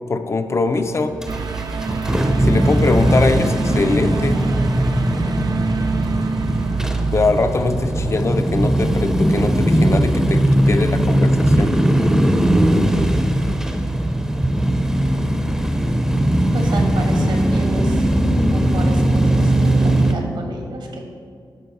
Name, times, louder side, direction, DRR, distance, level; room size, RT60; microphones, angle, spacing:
voice 1, 0.1-1.2 2.4-4.4 7.1-11.8, left 3 dB, 35° left, 9 dB, 0.5 m, -22 dB
sound 1, 1.2-20.1, right 1 dB, 5° right, 0.6 m, -18 dB
sound 2, 1.3-19.7 20.0-20.1, right 5 dB, 55° right, 0.5 m, -29 dB
voice 2, 16.5-18.1 18.5-21.0, right 2 dB, 75° right, 2 dB, 1.4 m, -31 dB
11.5 x 4.6 x 4.1 m, 2.1 s
wide cardioid pair, 105°, 8 cm